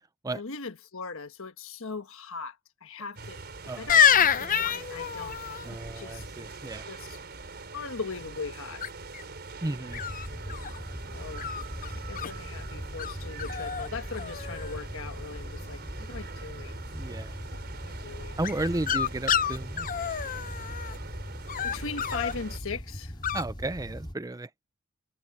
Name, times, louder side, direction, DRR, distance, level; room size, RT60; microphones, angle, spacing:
voice 1, 0.3-2.6 2.8-3.4 3.8-5.4 5.7-6.4 6.9-7.2 7.7-8.9 11.1-11.6 12.1-16.8 17.5-18.4 21.6-23.1, left 4 dB, 65° left, 1.4 m, -39 dB
sound 1, 3.2-22.6, right 3 dB, 50° right, 4.9 m, -44 dB
voice 2, 3.6-4.0 5.6-6.8 9.6-10.0 16.9-17.3 18.3-19.9 23.3-24.7, right 2 dB, 15° right, 0.6 m, -34 dB
sound 2, 3.9-5.7 8.8-9.2 9.9-10.8 11.4-12.3 13.0-13.1 13.4-13.9 14.1-14.8 18.4-21.0 21.5-22.3 23.2-23.4, left 8 dB, 40° left, 0.6 m, -27 dB
sound 3, 9.9-24.1, equal, 20° left, 4.0 m, -40 dB
head